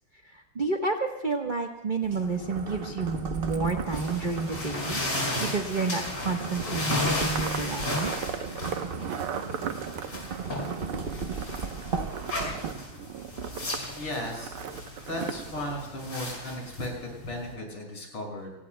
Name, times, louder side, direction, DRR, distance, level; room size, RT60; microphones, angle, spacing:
voice 1, 0.2-8.3, right 3 dB, 30° right, 3 dB, 1.0 m, -30 dB
sound 1, 2.0-13.0, right 5 dB, 60° right, 0.5 m, -37 dB
sound 2, 3.9-17.5, left 1 dB, 50° left, 6.6 m, -35 dB
sound 3, 6.4-15.8, right 8 dB, 90° right, 1.9 m, -38 dB
voice 2, 13.9-14.8 15.1-18.5, left 1 dB, 85° left, 0 dB, 7.1 m, -36 dB
30.0 x 20.0 x 2.2 m, 0.99 s
omnidirectional pair, 2.4 m